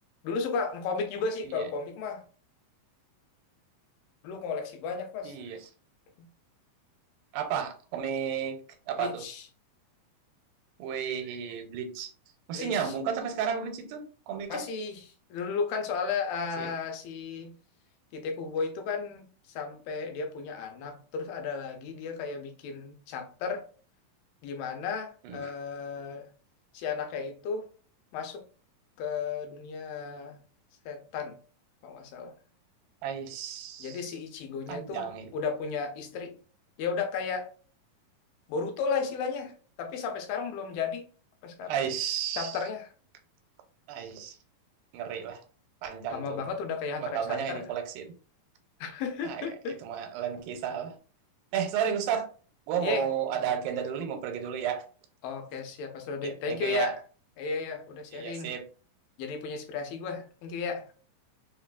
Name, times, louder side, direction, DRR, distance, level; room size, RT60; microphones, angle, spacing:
voice 1, 0.2-2.2 4.2-5.4 6.2-6.3 9.0-9.4 12.5-12.9 14.5-15.1 15.3-17.5 18.1-19.3 19.6-23.6 24.4-26.3 26.7-27.7 28.1-28.4 29.0-30.4 30.9-31.4 31.8-32.3 33.8-36.4 36.8-37.5 38.5-39.5 39.8-41.0 41.4-41.8 42.3-42.9 46.1-47.6 48.8-49.8 52.8-53.1 55.2-57.0 57.4-58.5 59.2-60.9, left 5 dB, 85° left, 2.4 m, -34 dB
voice 2, 5.2-5.6 7.3-8.6 8.9-9.2 10.8-12.1 12.5-14.6 16.6-16.7 25.2-25.5 33.0-34.0 34.7-35.3 41.7-42.6 43.9-44.3 44.9-45.4 45.8-46.4 47.0-48.1 49.2-49.4 49.8-51.0 51.5-52.3 52.7-54.9 56.2-57.0 58.1-58.6, right 8 dB, 85° right, 2.3 m, -32 dB
5.4 x 2.3 x 2.3 m
omnidirectional pair, 4.0 m